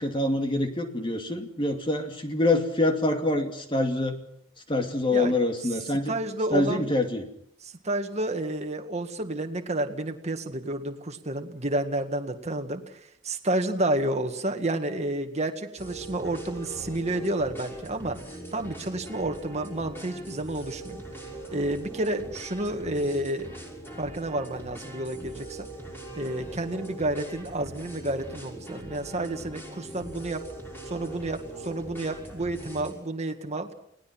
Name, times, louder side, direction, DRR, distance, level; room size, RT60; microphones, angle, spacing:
voice 1, 0.0-4.2 4.7-6.1 6.5-7.3, left 2 dB, 25° left, 5 dB, 2.5 m, -25 dB
voice 2, 6.1-6.9 7.8-18.2 18.5-21.0 21.5-23.5 24.0-25.7 26.2-30.4 30.9-33.7, right 1 dB, 35° right, 5 dB, 1.9 m, -30 dB
sound 1, 15.8-32.9, right 1 dB, 10° left, 5.8 m, -41 dB
29.5 x 19.0 x 6.0 m, 0.67 s
head